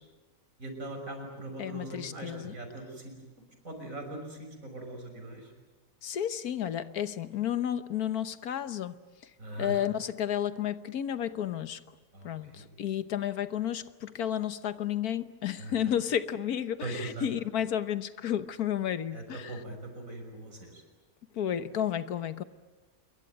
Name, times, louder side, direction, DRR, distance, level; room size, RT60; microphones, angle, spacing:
voice 1, 0.6-3.1 3.6-5.5 9.4-9.8 12.1-12.6 15.6-15.8 16.8-17.3 19.1-20.8, right 2 dB, 60° right, 6.3 m, -41 dB
voice 2, 1.6-2.5 6.0-9.0 9.2-9.3 9.6-11.8 12.2-19.6 21.3-22.4, left 10 dB, 85° left, 1.5 m, -32 dB
26.5 x 23.0 x 9.2 m
omnidirectional pair, 1.6 m